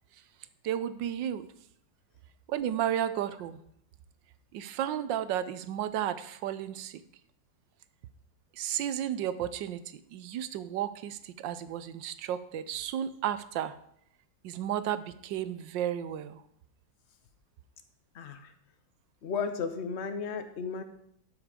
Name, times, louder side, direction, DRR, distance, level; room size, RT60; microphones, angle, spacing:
voice 1, 0.6-1.5 2.5-3.6 4.5-7.0 8.6-9.8 10.1-13.8 14.4-16.4, right 10 dB, 80° right, 13 dB, 1.4 m, -33 dB
voice 2, 18.1-18.5 19.2-20.8, left 5 dB, 45° left, 8 dB, 1.0 m, -34 dB
12.0 x 6.4 x 4.9 m, 0.71 s
omnidirectional pair, 2.0 m